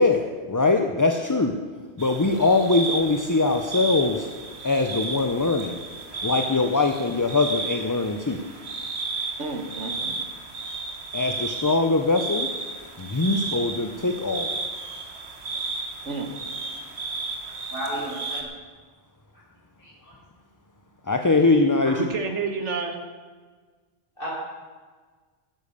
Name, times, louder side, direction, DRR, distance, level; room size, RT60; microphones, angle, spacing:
voice 1, 0.0-1.6 2.0-4.3 4.6-5.8 6.2-8.4 11.1-12.5 13.0-14.6 21.0-22.0, left 3 dB, 20° left, 5 dB, 0.5 m, -22 dB
sound 1, 2.0-18.4, right 3 dB, 65° right, 1.8 m, -33 dB
voice 2, 9.4-10.2 16.0-16.3 22.0-23.0, right 4 dB, 80° right, 5 dB, 1.8 m, -30 dB
voice 3, 17.5-18.4 19.8-20.1 24.2-24.3, right 1 dB, 50° left, -6 dB, 5.9 m, -34 dB
12.0 x 10.5 x 6.8 m, 1.4 s
omnidirectional pair, 1.2 m